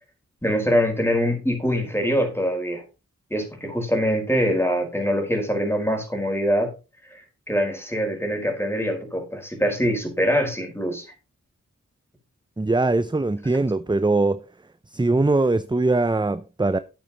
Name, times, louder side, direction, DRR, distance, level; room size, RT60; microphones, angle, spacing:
voice 1, 0.4-2.8 3.3-6.7 7.1-11.1, equal, 5° left, 4.9 m, -24 dB
voice 2, 12.6-14.4 14.9-16.8, right 2 dB, 15° right, 0.6 m, -21 dB
12.5 x 8.7 x 3.0 m
wide cardioid pair, 50°, 32 cm